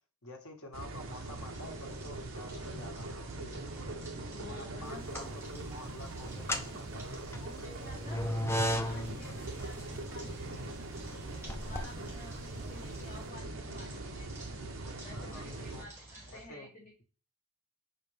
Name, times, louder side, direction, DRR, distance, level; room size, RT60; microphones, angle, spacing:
voice 1, 0.2-3.8 4.5-7.0 15.1-15.8 16.2-16.7, left 1 dB, 80° left, 3 dB, 1.4 m, -49 dB
sound 1, 0.7-15.8, right 2 dB, 65° right, 0.7 m, -42 dB
sound 2, 1.0-16.5, right 2 dB, 10° right, 1.7 m, -53 dB
voice 2, 4.2-5.0 7.4-10.9 11.5-14.5 15.0-16.9, left 2 dB, 40° left, -5 dB, 2.8 m, -51 dB
sound 3, 4.9-5.6 6.3-13.1, equal, 10° left, 0.5 m, -37 dB
5.8 x 4.9 x 3.3 m, 0.36 s
head